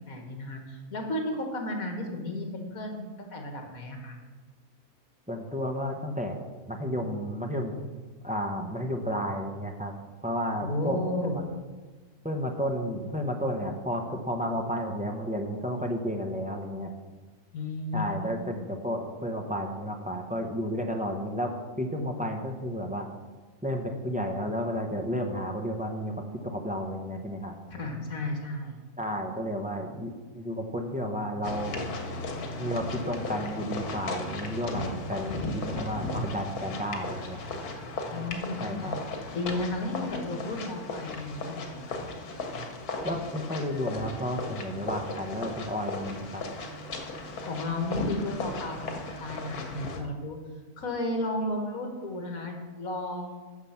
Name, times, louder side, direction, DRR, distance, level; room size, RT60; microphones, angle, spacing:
voice 1, 0.1-4.2 10.6-11.4 17.5-18.3 27.7-28.8 38.1-38.9 39.3-42.0 47.2-48.8 49.2-50.4 50.8-53.4, left 1 dB, 70° left, 2 dB, 2.0 m, -33 dB
voice 2, 5.3-7.7 8.2-9.9 10.2-11.0 12.2-16.9 17.9-23.1 23.6-27.5 29.0-31.8 32.6-37.4 38.6-38.9 43.0-46.4, equal, 5° right, 2 dB, 0.8 m, -32 dB
sound 1, 31.4-50.0, left 2 dB, 90° left, 1.6 m, -36 dB
9.4 x 7.0 x 5.8 m, 1.3 s
omnidirectional pair, 1.6 m